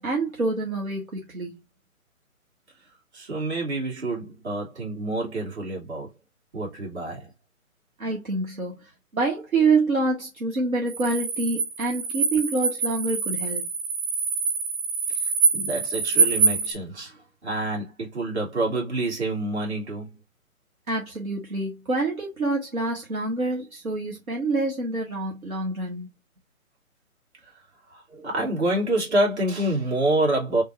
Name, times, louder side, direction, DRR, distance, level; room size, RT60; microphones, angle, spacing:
voice 1, 0.0-1.6 8.0-13.7 20.9-26.1, right 3 dB, 75° right, 1.6 m, -26 dB
voice 2, 3.1-6.1 6.5-7.3 15.1-15.2 15.5-20.2 27.9-30.6, right 1 dB, 50° right, 2.6 m, -27 dB
sound 1, 10.9-16.7, right 5 dB, 30° right, 1.2 m, -25 dB
3.7 x 2.7 x 2.9 m
figure-of-eight pair, 140°, 42 cm